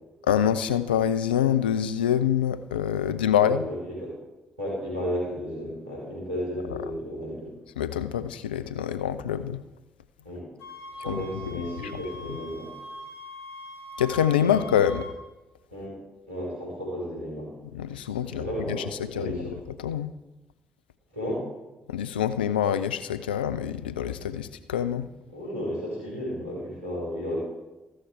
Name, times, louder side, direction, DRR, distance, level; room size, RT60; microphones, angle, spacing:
voice 1, 0.2-3.7 7.8-9.6 11.1-11.9 12.3-12.4 14.0-15.0 17.7-19.4 19.8-20.1 21.9-25.1, left 9 dB, 85° left, 13 dB, 0.4 m, -26 dB
voice 2, 3.3-4.1 4.6-7.5 10.2-10.5 10.9-12.7 14.4-14.8 15.7-16.0 16.3-17.5 18.2-19.6 21.1-21.4 25.3-27.4, equal, 85° right, -5 dB, 4.3 m, -33 dB
sound 1, 10.6-15.2, equal, 70° left, 1.3 m, -42 dB
14.0 x 6.5 x 4.6 m, 1.0 s
hypercardioid pair, 40°, 5 cm